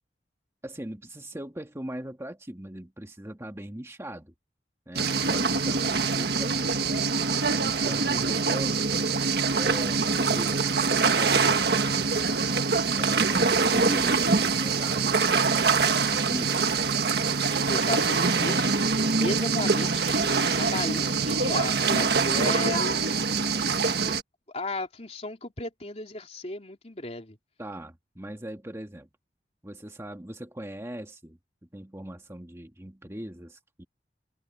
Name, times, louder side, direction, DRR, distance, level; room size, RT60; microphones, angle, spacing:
voice 1, 0.6-4.3 4.9-6.6 7.6-9.1 9.6-12.4 13.0-16.6 27.6-29.1 29.6-31.4 31.7-33.8, right 1 dB, 15° right, 1.7 m, -39 dB
sound 1, 4.9-24.2, right 4 dB, 65° right, 1.6 m, -24 dB
voice 2, 5.4-5.9 7.8-8.3 17.7-23.3 24.5-27.4, left 2 dB, 40° left, 3.5 m, -35 dB
head